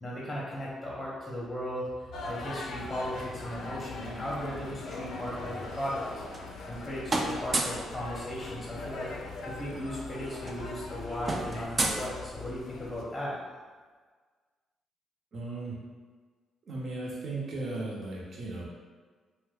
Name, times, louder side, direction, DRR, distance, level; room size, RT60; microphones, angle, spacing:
voice 1, 0.0-6.0 6.7-9.1 9.4-13.4, equal, 15° left, -5 dB, 0.8 m, -36 dB
sound 1, 2.1-13.0, left 3 dB, 70° left, 0.4 m, -41 dB
sound 2, 6.0-6.8 7.1-7.9 9.3-9.4 9.6-9.8 10.1-12.7, right 2 dB, 30° right, 0.4 m, -33 dB
voice 2, 15.3-15.8 16.7-18.6, right 2 dB, 55° right, -3 dB, 0.8 m, -36 dB
2.7 x 2.1 x 3.5 m, 1.5 s
cardioid pair, 90°, 0 cm